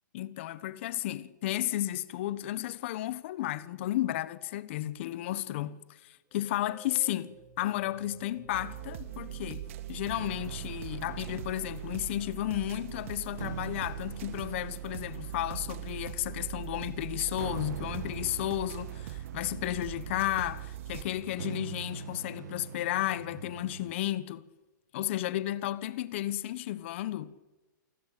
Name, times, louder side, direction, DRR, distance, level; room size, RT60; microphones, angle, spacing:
voice 1, 0.1-24.4 24.9-27.3, left 14 dB, 40° left, 1.3 m, -33 dB
sound 1, 6.3-10.9, right 5 dB, 10° right, 4.7 m, -54 dB
sound 2, 8.5-21.0, right 13 dB, 40° right, 2.0 m, -42 dB
sound 3, 10.1-23.9, right 7 dB, 60° right, 1.4 m, -44 dB
29.0 x 20.0 x 8.5 m
hypercardioid pair, 165°, 10 cm